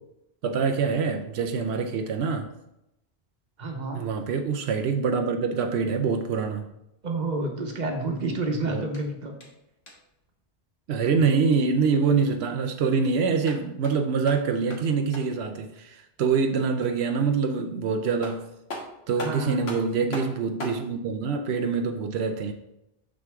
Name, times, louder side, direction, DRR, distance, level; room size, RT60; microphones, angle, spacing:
voice 1, 0.4-2.5 3.9-6.6 8.7-8.8 10.9-18.5 19.1-22.5, right 5 dB, 85° right, 5 dB, 0.9 m, -25 dB
voice 2, 3.6-4.0 7.0-9.3 19.2-19.7, right 2 dB, 45° right, 3 dB, 1.2 m, -29 dB
sound 1, 8.9-10.2 13.2-15.5 17.7-17.8 18.2-20.8, left 1 dB, 80° left, 1.8 m, -40 dB
6.3 x 6.3 x 3.5 m, 0.85 s
omnidirectional pair, 1.1 m